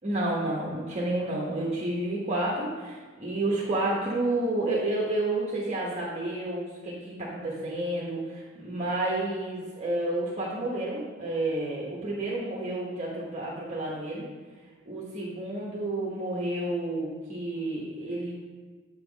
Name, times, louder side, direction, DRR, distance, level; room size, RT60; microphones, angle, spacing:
voice 1, 0.0-14.2 14.9-18.3, right 2 dB, 35° right, -4 dB, 1.1 m, -30 dB
8.1 x 5.6 x 4.0 m, 1.5 s
head